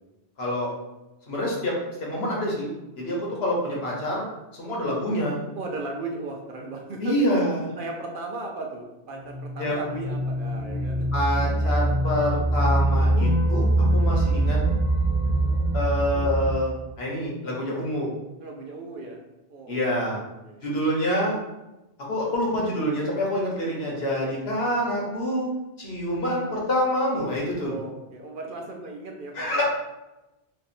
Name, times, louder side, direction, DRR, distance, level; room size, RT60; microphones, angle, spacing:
voice 1, 0.4-0.7 1.3-2.7 3.0-4.2 4.5-5.4 7.0-7.6 9.6-9.9 11.1-14.6 15.7-18.1 19.7-20.2 20.6-21.4 22.1-25.5 25.8-27.7 29.4-29.6, equal, 70° left, -3 dB, 1.3 m, -26 dB
voice 2, 5.5-7.4 7.8-11.1 11.4-11.7 18.4-19.2 19.5-20.8 27.6-29.6, right 2 dB, 60° right, 1 dB, 0.7 m, -37 dB
sound 1, 9.1-16.6, right 1 dB, 20° left, 1.0 m, -23 dB
3.2 x 2.6 x 4.0 m, 0.99 s
omnidirectional pair, 1.1 m